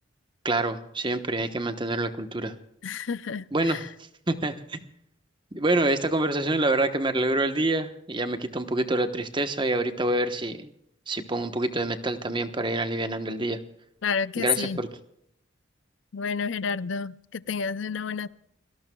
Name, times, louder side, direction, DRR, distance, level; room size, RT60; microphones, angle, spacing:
voice 1, 0.4-2.5 3.5-3.8 4.3-4.8 5.5-10.7 11.1-13.6 14.4-14.9, right 2 dB, 25° right, 1.1 m, -26 dB
voice 2, 2.8-3.9 14.0-14.8 16.1-18.3, left 6 dB, 70° left, 0.5 m, -30 dB
29.5 x 18.5 x 2.3 m
head